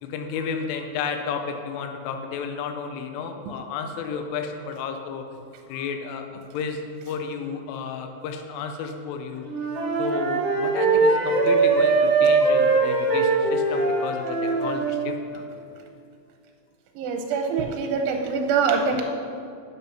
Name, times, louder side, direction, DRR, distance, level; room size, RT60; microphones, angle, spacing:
voice 1, 0.0-5.2 5.7-6.3 6.5-6.8 7.1-9.5 10.0-15.4, left 6 dB, 80° left, 5 dB, 3.3 m, -32 dB
Wind instrument woodwind instrument, 9.4-15.0, right 3 dB, 45° right, 2.3 m, -21 dB
voice 2, 17.0-19.0, right 5 dB, 85° right, 3 dB, 3.0 m, -24 dB
9.0 x 7.3 x 5.6 m, 2.4 s
omnidirectional pair, 5.8 m